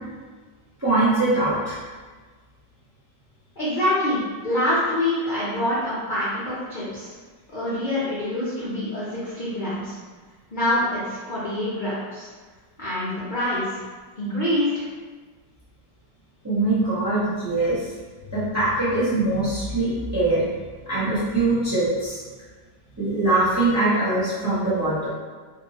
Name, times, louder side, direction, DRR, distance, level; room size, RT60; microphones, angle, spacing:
voice 1, 0.8-1.8 16.4-17.8 18.3-20.4 20.9-22.2 23.0-25.1, right 2 dB, 15° right, -11 dB, 0.6 m, -22 dB
voice 2, 3.6-7.1 7.5-10.0 10.5-12.3 12.8-13.8 14.2-14.8, left 1 dB, 65° left, -10 dB, 0.4 m, -25 dB
2.8 x 2.5 x 2.8 m, 1.4 s
omnidirectional pair, 1.9 m